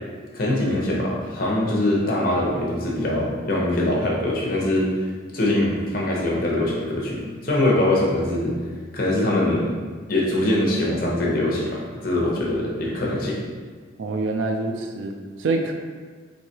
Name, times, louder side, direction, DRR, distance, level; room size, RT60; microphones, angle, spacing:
voice 1, 0.3-4.9 5.3-8.6 8.9-9.8 10.1-13.4, left 1 dB, 50° left, -3 dB, 0.8 m, -23 dB
voice 2, 14.0-15.1 15.4-15.7, right 3 dB, 80° right, 3 dB, 0.4 m, -25 dB
4.6 x 2.7 x 2.8 m, 1.5 s
head